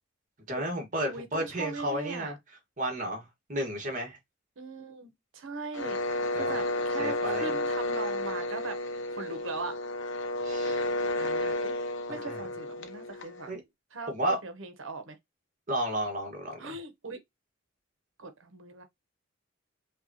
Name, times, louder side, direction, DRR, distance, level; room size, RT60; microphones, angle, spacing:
voice 1, 0.5-2.4 2.8-4.2 6.3-6.5 7.0-7.5 10.4-10.8 12.3-12.4 13.5-13.6 14.1-14.4 15.7-16.7, right 1 dB, 40° right, 1.4 m, -32 dB
voice 2, 1.1-2.3 4.6-8.8 9.2-9.8 11.2-11.7 12.1-13.6 13.9-14.1 14.4-15.2 16.6-17.2 18.2-18.8, right 3 dB, 70° right, 0.9 m, -40 dB
sound 1, 5.7-13.5, left 1 dB, 65° left, 0.7 m, -32 dB
5.4 x 2.3 x 2.8 m
head